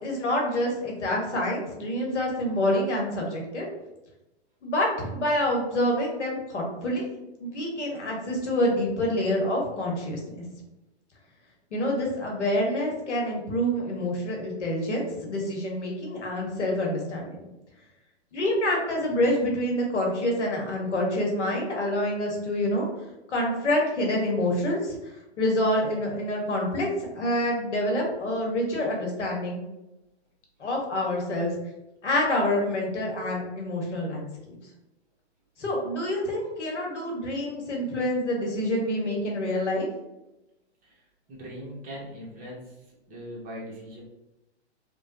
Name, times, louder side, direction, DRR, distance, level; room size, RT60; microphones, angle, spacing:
voice 1, 0.0-3.7 4.6-7.0 7.4-10.2 11.7-17.4 18.3-22.9 23.3-26.9 27.1-29.6 30.6-31.5 32.0-34.3 35.6-39.9, left 1 dB, 85° left, -1 dB, 1.0 m, -27 dB
voice 2, 41.3-42.7 43.1-44.0, equal, 25° right, -4 dB, 0.9 m, -40 dB
3.0 x 2.2 x 2.6 m, 0.96 s
hypercardioid pair, 115°, 34 cm